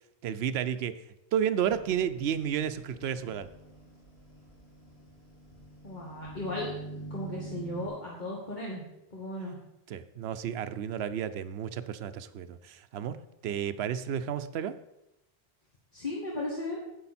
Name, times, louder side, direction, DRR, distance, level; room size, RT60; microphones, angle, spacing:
voice 1, 0.2-1.0 1.3-3.5 9.9-13.2 13.4-14.7, right 9 dB, 85° right, 13 dB, 0.9 m, -31 dB
sound 1, 1.6-7.9, right 2 dB, 80° left, 2.1 m, -46 dB
voice 2, 5.8-6.7 7.1-8.8 9.1-9.6 15.9-16.8, left 1 dB, 45° left, -4 dB, 1.8 m, -36 dB
9.7 x 8.1 x 4.2 m, 0.87 s
omnidirectional pair, 1.0 m